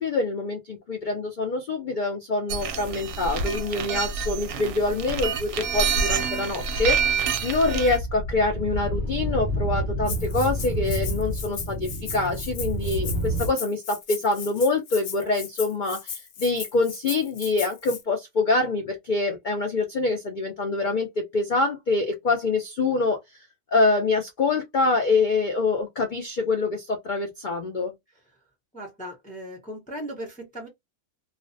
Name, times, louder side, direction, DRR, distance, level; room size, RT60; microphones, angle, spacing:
voice 1, 0.0-23.2 23.7-27.9, left 3 dB, 80° left, 0.4 m, -25 dB
sound 1, 2.5-8.0, right 5 dB, 70° right, 0.9 m, -27 dB
sound 2, 6.7-13.5, right 1 dB, 45° right, 0.7 m, -30 dB
Rattle (instrument), 10.1-18.0, left 6 dB, 60° left, 0.9 m, -37 dB
voice 2, 28.7-30.7, equal, 10° left, 0.6 m, -37 dB
2.4 x 2.1 x 2.5 m
omnidirectional pair, 1.5 m